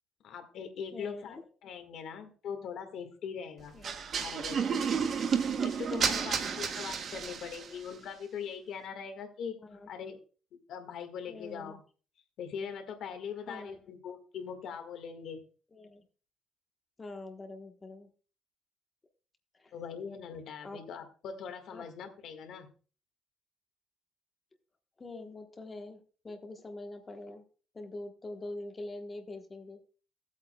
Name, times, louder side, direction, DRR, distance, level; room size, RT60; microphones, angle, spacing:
voice 1, 0.2-3.8 4.2-4.6 5.6-10.2 10.7-11.8 12.4-15.4 19.7-22.7, left 7 dB, 65° left, 6 dB, 1.7 m, -41 dB
voice 2, 0.9-1.4 3.7-4.1 6.1-6.2 9.6-9.9 11.3-11.8 13.5-13.7 15.7-16.0 17.0-18.1 19.6-19.7 20.6-20.8 21.7-21.9 25.0-27.4 27.7-29.8, left 2 dB, 20° left, 5 dB, 1.2 m, -44 dB
sound 1, 3.8-7.8, right 6 dB, 45° right, 0.9 m, -31 dB
16.0 x 8.2 x 2.3 m, 0.38 s
cardioid pair, 150°, 0 cm